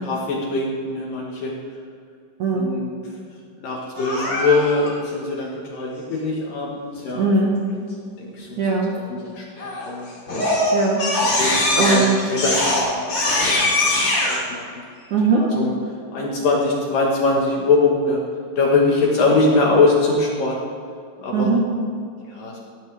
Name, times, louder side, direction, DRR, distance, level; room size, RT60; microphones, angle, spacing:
voice 1, 0.0-1.5 2.5-2.9 3.6-7.3 8.2-8.6 9.1-10.1 11.4-12.0 12.3-14.7 15.6-15.7 16.1-18.2 18.6-20.5 21.2-21.5 22.2-22.6, left 3 dB, 65° left, -2 dB, 2.5 m, -22 dB
voice 2, 2.4-2.7 7.1-7.6 8.6-8.9 10.7-11.1 11.4-12.3 15.1-15.5 21.3-21.6, right 3 dB, 65° right, -2 dB, 2.0 m, -20 dB
Crying sobbing, 4.0-4.9 9.6-9.9 10.3-14.4, left 1 dB, 30° left, 3.6 m, -21 dB
17.5 x 13.5 x 3.3 m, 2.4 s
omnidirectional pair, 5.1 m